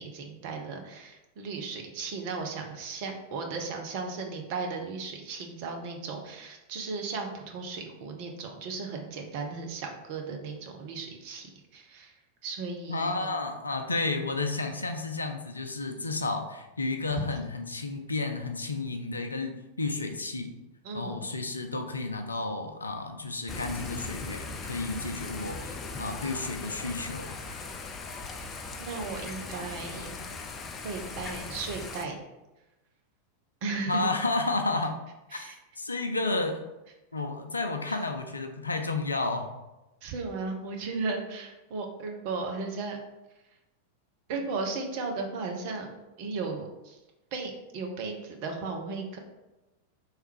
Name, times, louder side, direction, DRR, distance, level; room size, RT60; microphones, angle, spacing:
voice 1, 0.0-11.5 11.7-12.1 12.4-13.3 20.8-21.2 28.8-30.2 30.8-32.2 33.6-34.1 35.3-35.5 37.9-38.0 40.0-43.0 44.3-47.0 47.3-49.2, right 4 dB, 45° right, 2 dB, 0.8 m, -35 dB
voice 2, 12.9-20.5 20.9-27.4 33.9-35.0 35.3-35.5 35.8-36.6 37.1-39.5, left 3 dB, 80° left, 5 dB, 0.5 m, -31 dB
Thunder / Rain, 23.5-32.1, left 3 dB, 25° left, 0.4 m, -39 dB
3.4 x 3.2 x 4.6 m, 1.0 s
figure-of-eight pair, 90°, 0 cm